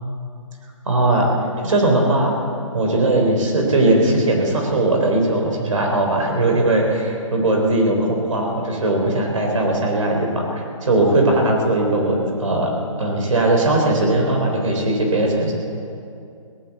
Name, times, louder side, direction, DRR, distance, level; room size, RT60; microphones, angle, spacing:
voice 1, 0.9-1.3 1.6-2.3 2.7-15.5, right 2 dB, 70° right, 1 dB, 3.7 m, -19 dB
19.0 x 10.5 x 7.2 m, 2.5 s
hypercardioid pair, 165°, 17 cm